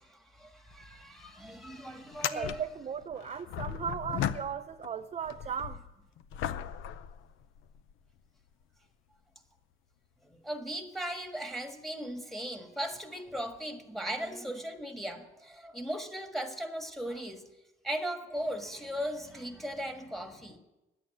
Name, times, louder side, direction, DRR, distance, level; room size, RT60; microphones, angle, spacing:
voice 1, 0.0-2.6 6.3-6.5 10.2-17.5 17.8-20.6, equal, ahead, 1.6 m, -38 dB
sound 1, 0.7-0.8 1.1-1.2 2.0-4.9 5.2-7.9 8.6-8.7 12.8-13.0 14.3-14.4, left 10 dB, 85° left, 0.6 m, -37 dB
voice 2, 2.3-5.8, right 7 dB, 35° right, 0.4 m, -37 dB
10.5 x 8.6 x 8.7 m
cardioid pair, 90°, 20 cm